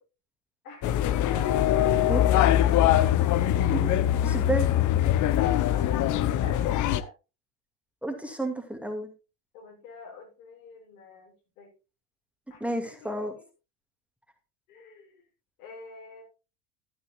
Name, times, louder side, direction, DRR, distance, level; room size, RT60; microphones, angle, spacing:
voice 1, 0.6-2.3 5.3-7.2 9.5-11.7 12.5-13.4 14.7-15.3 15.6-16.2, left 6 dB, 80° left, -1 dB, 6.6 m, -45 dB
sound 1, 0.8-7.0, left 12 dB, 45° left, 0.8 m, -23 dB
voice 2, 4.2-4.7 8.0-9.1 12.6-13.3, right 2 dB, 5° right, 2 dB, 2.2 m, -30 dB
13.0 x 10.5 x 2.4 m, 0.30 s
hypercardioid pair, 95°, 43 cm